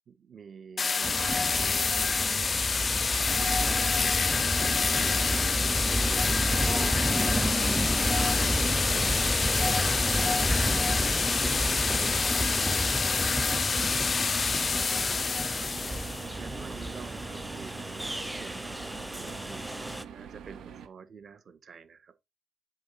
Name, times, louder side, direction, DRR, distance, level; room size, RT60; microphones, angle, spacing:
voice 1, 0.1-5.3 14.8-22.3, right 6 dB, 55° right, 1.6 m, -50 dB
sound 1, 0.8-16.3, left 5 dB, 35° left, 0.4 m, -27 dB
Train, 1.0-20.0, right 1 dB, 5° right, 0.7 m, -31 dB
voice 2, 6.6-9.4 9.8-11.3 11.7-13.7 16.6-16.8, right 5 dB, 35° right, 1.3 m, -48 dB
sound 2, 15.7-20.9, right 7 dB, 85° right, 1.6 m, -45 dB
7.8 x 3.8 x 5.8 m
cardioid pair, 100°, 0 cm